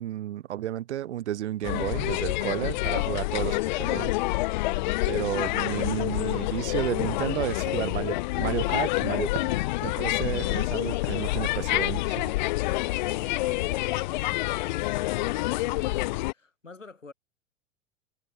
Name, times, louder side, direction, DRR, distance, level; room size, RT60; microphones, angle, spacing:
voice 1, 0.0-4.5 5.1-12.3, right 12 dB, 65° right, 0.7 m, -32 dB
sound 1, 1.6-16.3, left 19 dB, 40° left, 0.4 m, -27 dB
voice 2, 13.1-17.1, left 3 dB, 85° left, 5.5 m, -49 dB
figure-of-eight pair, 95°, 37 cm